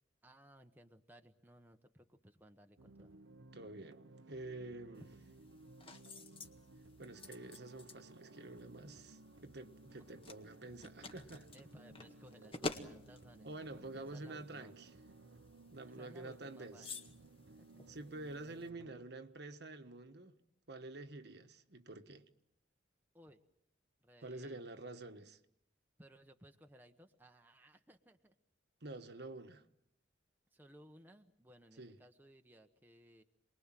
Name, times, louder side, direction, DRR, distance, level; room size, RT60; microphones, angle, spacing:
voice 1, 0.2-3.2 9.9-10.0 11.5-14.7 15.8-16.9 17.4-17.8 23.1-23.4 24.0-24.6 26.0-28.4 30.5-33.2, equal, 10° right, 1.1 m, -61 dB
sound 1, 2.8-19.0, right 2 dB, 85° right, 1.0 m, -59 dB
voice 2, 3.5-4.0 4.3-5.2 7.0-11.5 13.4-14.9 15.7-16.9 17.9-20.3 20.7-22.3 24.2-25.4 28.8-29.6 31.8-32.0, right 2 dB, 60° right, 1.4 m, -48 dB
sound 2, 4.9-18.7, left 3 dB, 30° left, 1.7 m, -51 dB
28.0 x 21.0 x 7.6 m
head